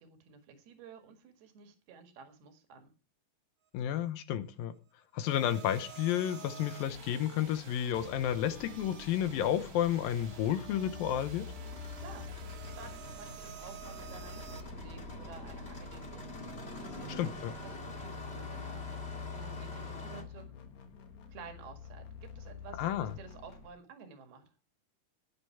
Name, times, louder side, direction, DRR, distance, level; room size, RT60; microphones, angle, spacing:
voice 1, 0.0-2.9 12.0-12.3 12.6-20.5 21.3-24.4, right 5 dB, 80° right, 3.8 m, -52 dB
voice 2, 3.7-4.7 5.1-11.5 17.2-17.5 22.8-23.1, left 10 dB, 75° left, 2.5 m, -31 dB
sound 1, 5.2-14.6, right 9 dB, 55° right, 2.1 m, -50 dB
Engine starting, 5.8-20.2, left 1 dB, 30° left, 1.2 m, -48 dB
sound 2, 7.9-23.7, left 5 dB, 55° left, 2.6 m, -47 dB
18.5 x 6.9 x 4.6 m
omnidirectional pair, 4.4 m